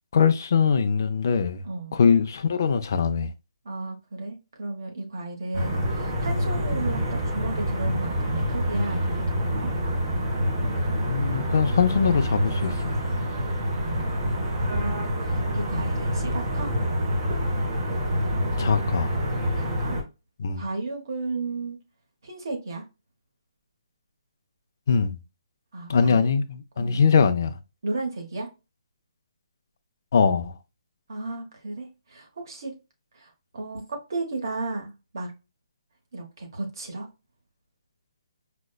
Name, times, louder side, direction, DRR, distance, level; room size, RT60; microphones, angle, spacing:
voice 1, 0.1-1.6 1.9-3.3 11.0-13.0 18.6-19.1 20.4-20.6 24.9-25.2 25.9-27.6 30.1-30.5, left 6 dB, 35° left, 0.4 m, -22 dB
voice 2, 1.6-2.0 3.6-9.7 13.7-16.7 19.5-20.0 20.5-21.8 22.2-22.8 25.7-26.3 26.8-27.0 27.8-28.5 31.1-32.7 33.1-35.3 36.1-37.1, right 3 dB, 45° right, 1.1 m, -34 dB
sound 1, 5.5-20.0, equal, 15° right, 0.6 m, -26 dB
4.9 x 2.1 x 2.2 m
hypercardioid pair, 180°, 3 cm